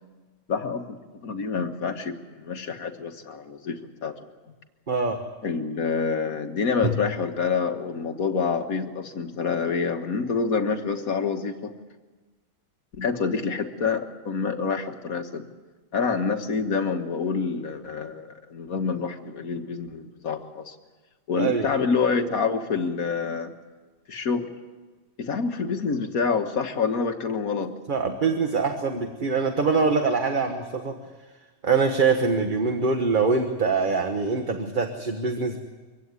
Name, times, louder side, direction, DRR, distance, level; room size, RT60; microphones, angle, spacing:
voice 1, 0.5-1.0 1.2-4.1 5.4-11.7 13.0-15.4 15.9-20.8 21.3-23.5 24.1-24.5 25.2-27.7, left 5 dB, 60° left, 5 dB, 1.8 m, -27 dB
voice 2, 4.9-5.2 6.8-6.9 21.4-21.7 27.9-30.9 31.6-35.6, right 4 dB, 35° right, 5 dB, 1.3 m, -24 dB
24.0 x 16.0 x 9.6 m, 1.3 s
omnidirectional pair, 1.8 m